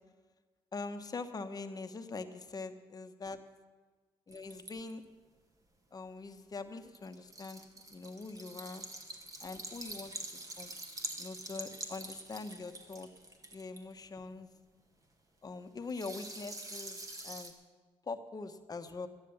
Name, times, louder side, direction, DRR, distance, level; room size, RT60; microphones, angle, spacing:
voice 1, 0.7-3.4 4.3-5.0 5.9-7.6 7.9-8.9 9.4-10.1 10.6-10.7 11.2-13.1 13.5-14.5 15.4-17.5 18.1-19.1, left 3 dB, 35° left, 8 dB, 1.1 m, -43 dB
sound 1, 4.3-4.9 6.9-14.2 15.9-17.5, right 2 dB, 30° right, 1.9 m, -45 dB
13.0 x 10.5 x 7.0 m, 1.4 s
cardioid pair, 75°, 11 cm